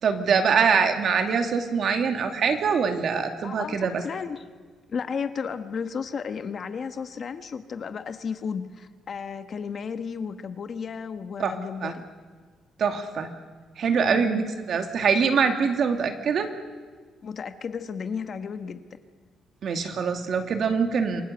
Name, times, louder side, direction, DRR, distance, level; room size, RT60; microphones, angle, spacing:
voice 1, 0.0-4.0 11.4-11.5 11.8-11.9 12.8-13.3 13.8-16.5 19.6-21.2, right 6 dB, 55° right, 6 dB, 2.4 m, -24 dB
voice 2, 3.4-4.5 4.9-12.0 14.1-14.4 17.2-18.8, left 6 dB, 45° left, 9 dB, 1.3 m, -33 dB
28.0 x 20.0 x 8.1 m, 1.5 s
cardioid pair, 140°, 0 cm